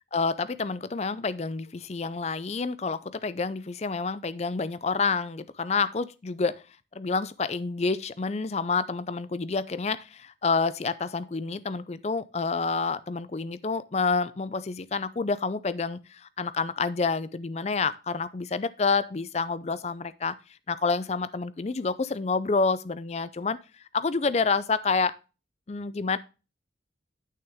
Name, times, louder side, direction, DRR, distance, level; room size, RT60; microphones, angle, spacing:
voice 1, 0.1-6.6 6.9-20.4 20.7-23.6 23.9-25.2 25.7-26.2, left 4 dB, 35° left, 0.4 m, -28 dB
8.7 x 6.4 x 3.5 m
head